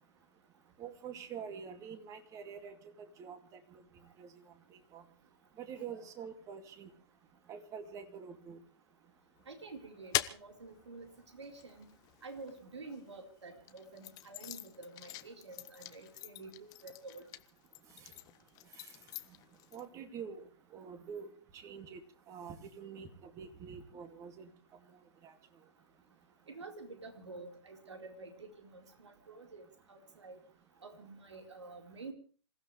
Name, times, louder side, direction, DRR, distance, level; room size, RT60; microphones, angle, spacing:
voice 1, 0.8-3.8 4.2-4.3 4.7-5.0 5.6-6.9 7.5-8.6 18.8-18.9 19.7-22.0 22.3-24.5 25.2-25.3, right 7 dB, 20° right, 8 dB, 2.4 m, -46 dB
sound 1, 9.4-13.0 13.6-19.9, left 16 dB, 25° left, 0.9 m, -43 dB
voice 2, 9.5-11.9 12.2-17.3 26.5-30.4 30.8-32.1, right 3 dB, 80° right, 4 dB, 4.5 m, -49 dB
27.0 x 15.5 x 3.3 m, 0.40 s
hypercardioid pair, 135°, 15 cm